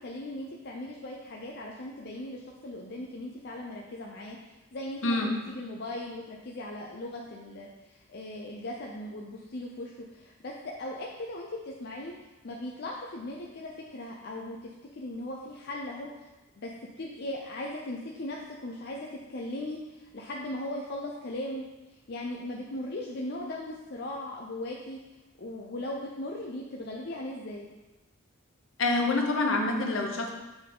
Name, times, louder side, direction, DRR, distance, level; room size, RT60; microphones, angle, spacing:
voice 1, 0.0-4.4 4.7-12.1 12.4-16.3 16.6-21.6 22.1-25.0 25.4-27.7, left 1 dB, 55° left, -1 dB, 0.6 m, -38 dB
voice 2, 5.0-5.3 28.8-30.3, left 2 dB, 70° left, 2 dB, 0.9 m, -26 dB
7.8 x 3.7 x 3.9 m, 1.1 s
head